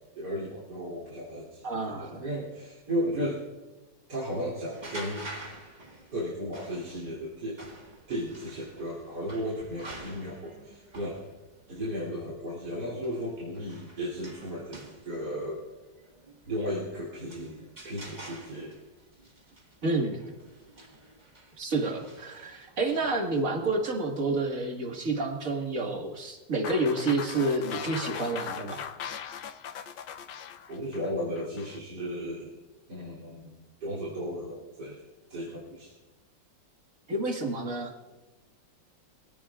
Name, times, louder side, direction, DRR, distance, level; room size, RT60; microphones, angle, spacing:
voice 1, 0.2-3.4 4.1-5.3 6.1-7.6 8.1-11.2 11.7-15.6 16.5-18.8 30.7-32.5 32.9-35.0 35.3-35.9, equal, 65° right, -7 dB, 3.6 m, -35 dB
voice 2, 1.6-2.2 19.8-20.3 21.6-28.9 37.1-37.9, right 2 dB, 45° right, 2 dB, 2.1 m, -29 dB
sound 1, 4.7-23.4, right 2 dB, 25° right, 1.7 m, -48 dB
sound 2, 26.6-31.8, left 8 dB, 75° left, 1.3 m, -39 dB
23.0 x 16.5 x 2.4 m, 1.2 s
omnidirectional pair, 2.0 m